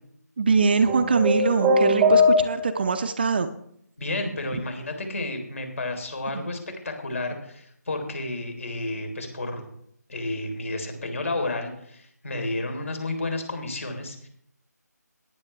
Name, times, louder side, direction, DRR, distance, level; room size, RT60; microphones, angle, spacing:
voice 1, 0.4-3.5 6.3-6.5, right 4 dB, 35° right, 9 dB, 0.7 m, -23 dB
sound 1, 0.8-2.9, left 1 dB, 10° right, 1.1 m, -20 dB
voice 2, 4.0-6.6 6.8-9.7 10.1-14.3, left 2 dB, 50° left, 4 dB, 3.5 m, -31 dB
17.5 x 10.0 x 3.3 m, 0.70 s
figure-of-eight pair, 160°, 10 cm